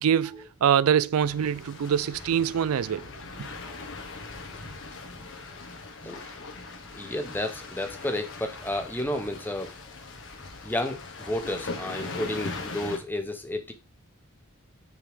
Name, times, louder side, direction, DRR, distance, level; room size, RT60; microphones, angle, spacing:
voice 1, 0.0-3.0, right 8 dB, 70° right, 0.4 m, -24 dB
sound 1, 1.2-13.0, left 3 dB, 60° left, 1.7 m, -40 dB
voice 2, 6.0-6.4 6.9-9.8 10.6-13.7, left 1 dB, 10° left, 1.1 m, -32 dB
8.4 x 6.0 x 3.7 m
head